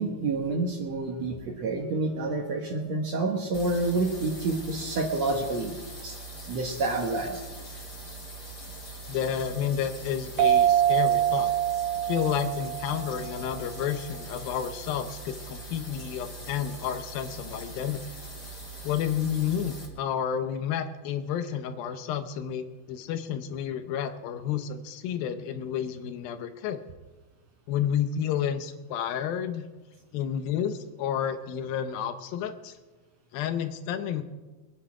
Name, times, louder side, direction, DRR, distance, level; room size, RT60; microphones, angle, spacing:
voice 1, 0.0-6.2 6.5-7.4, right 3 dB, 60° right, 2 dB, 1.9 m, -28 dB
sound 1, 3.5-19.9, right 2 dB, 30° left, 3.1 m, -42 dB
voice 2, 9.1-11.5 12.0-18.0 18.8-26.8 27.7-29.7 30.1-32.8 33.3-34.2, left 9 dB, 80° left, 9 dB, 2.6 m, -30 dB
sound 2, 10.4-13.7, right 11 dB, 85° right, 2.6 m, -25 dB
22.5 x 10.0 x 4.8 m, 1.2 s
omnidirectional pair, 4.3 m